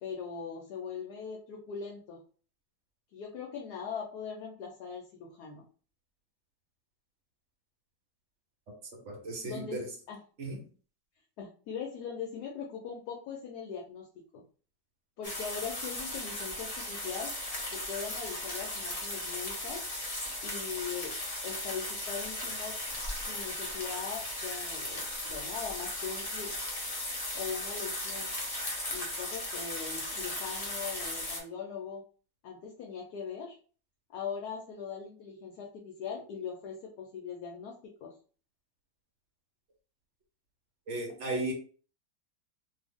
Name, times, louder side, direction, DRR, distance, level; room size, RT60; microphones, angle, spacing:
voice 1, 0.0-2.2 3.1-5.6 9.4-9.8 10.1-10.2 11.4-14.4 15.2-17.3 17.7-19.8 20.4-21.2 21.4-22.8 23.3-26.5 27.3-28.3 28.9-32.0 32.4-33.6 34.1-38.1, left 6 dB, 70° left, 1 dB, 1.1 m, -40 dB
voice 2, 9.1-9.9 10.4-10.6 40.9-41.5, right 2 dB, 55° right, 1 dB, 0.9 m, -35 dB
sound 1, 15.2-31.4, left 1 dB, 40° left, 0.5 m, -37 dB
2.7 x 2.6 x 3.4 m, 0.40 s
omnidirectional pair, 1.9 m